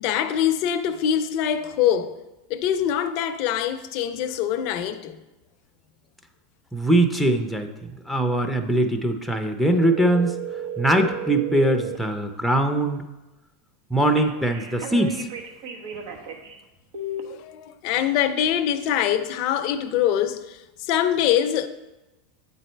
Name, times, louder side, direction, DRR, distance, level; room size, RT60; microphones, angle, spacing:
voice 1, 0.0-2.2 2.5-5.2 17.2-21.7, left 10 dB, 55° left, 0.5 m, -24 dB
voice 2, 6.7-10.3 10.8-13.1 13.9-15.3, right 1 dB, ahead, 0.6 m, -22 dB
sound 1, 9.7-12.0 14.2-16.6 16.9-17.2, right 5 dB, 70° right, 1.0 m, -33 dB
9.1 x 4.1 x 4.5 m
supercardioid pair, 125°, 0 cm